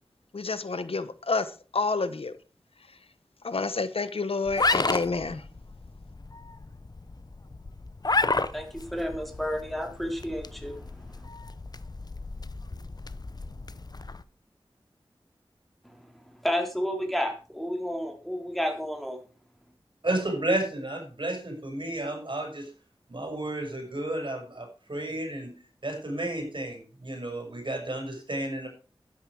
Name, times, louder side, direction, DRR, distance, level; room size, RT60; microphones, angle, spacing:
voice 1, 0.3-1.5 1.7-2.3 3.4-5.4, left 4 dB, 85° left, 1.0 m, -29 dB
sound 1, 4.5-14.2, left 3 dB, 45° left, 0.8 m, -32 dB
voice 2, 8.5-11.2 15.8-19.2, equal, ahead, 3.9 m, -32 dB
voice 3, 20.0-22.7 23.1-25.6 25.8-28.7, right 1 dB, 60° right, 6.0 m, -32 dB
12.5 x 9.8 x 4.9 m
wide cardioid pair, 55°, 9 cm